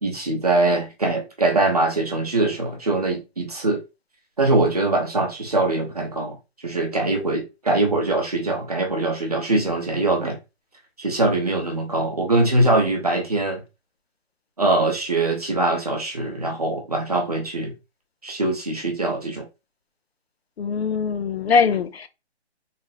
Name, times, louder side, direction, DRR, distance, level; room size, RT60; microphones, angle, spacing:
voice 1, 0.0-3.8 4.4-6.4 6.6-10.4 11.0-13.6 14.6-17.7 18.2-19.5, right 2 dB, 35° right, 0.7 m, -22 dB
voice 2, 20.6-22.1, left 5 dB, 65° left, 0.5 m, -21 dB
3.3 x 2.2 x 2.6 m
hypercardioid pair, 180°, 33 cm